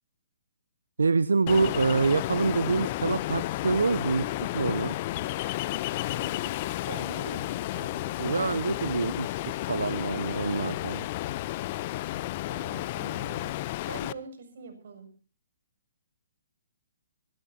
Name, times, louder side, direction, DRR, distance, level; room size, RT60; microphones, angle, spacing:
voice 1, 1.0-5.0 8.2-11.1, right 4 dB, 80° right, 18 dB, 0.7 m, -26 dB
Ocean, 1.5-14.1, left 16 dB, 40° left, 0.7 m, -32 dB
voice 2, 6.1-8.2 12.5-13.5 13.8-15.1, right 4 dB, 60° right, 6 dB, 6.8 m, -44 dB
23.5 x 18.0 x 2.8 m, 0.37 s
hypercardioid pair, 135°, 0 cm